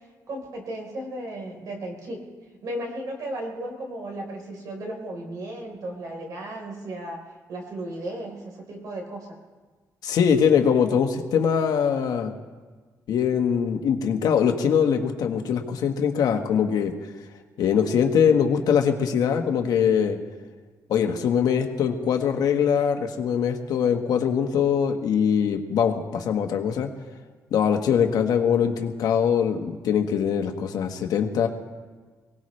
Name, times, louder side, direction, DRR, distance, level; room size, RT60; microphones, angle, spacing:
voice 1, 0.3-2.3 2.6-7.2 7.5-9.4, right 1 dB, 65° right, 1 dB, 3.9 m, -35 dB
voice 2, 10.0-12.3 13.1-16.9 17.6-20.2 20.9-26.9 27.5-31.5, left 7 dB, 75° left, 4 dB, 1.4 m, -22 dB
23.5 x 18.0 x 3.2 m, 1.4 s
cardioid pair, 140°, 7 cm